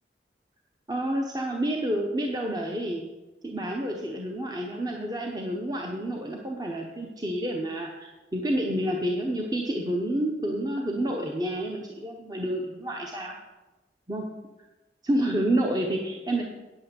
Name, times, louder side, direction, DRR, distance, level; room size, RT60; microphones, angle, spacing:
voice 1, 0.9-3.0 3.4-13.3 14.1-14.2 15.0-16.4, right 1 dB, 20° right, 1 dB, 0.9 m, -29 dB
9.2 x 8.5 x 6.8 m, 1.1 s
head